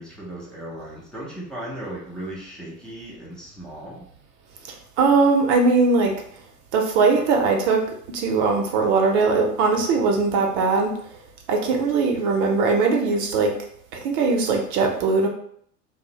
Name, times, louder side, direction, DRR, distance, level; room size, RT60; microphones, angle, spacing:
voice 1, 0.0-4.1, right 1 dB, ahead, -6 dB, 0.3 m, -36 dB
voice 2, 4.6-6.1 6.7-11.2 11.5-13.5 13.9-15.3, right 4 dB, 45° right, 2 dB, 0.6 m, -20 dB
2.4 x 2.0 x 2.8 m, 0.64 s
hypercardioid pair, 100°, 47 cm